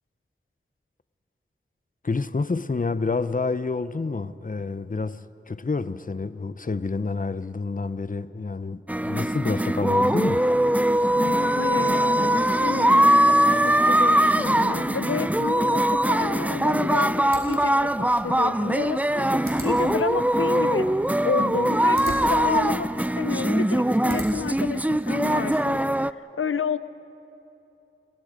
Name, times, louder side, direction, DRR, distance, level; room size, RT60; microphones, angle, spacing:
voice 1, 2.0-5.2 5.5-10.5, left 4 dB, 40° left, 0.7 m, -28 dB
sound 1, 8.9-26.1, right 1 dB, 5° right, 0.4 m, -22 dB
voice 2, 11.2-20.9 21.2-25.8 26.2-26.8, left 6 dB, 90° left, 0.6 m, -30 dB
sound 2, 17.2-24.6, right 1 dB, 80° right, 4.1 m, -43 dB
30.0 x 22.5 x 5.2 m
wide cardioid pair, 55°, 21 cm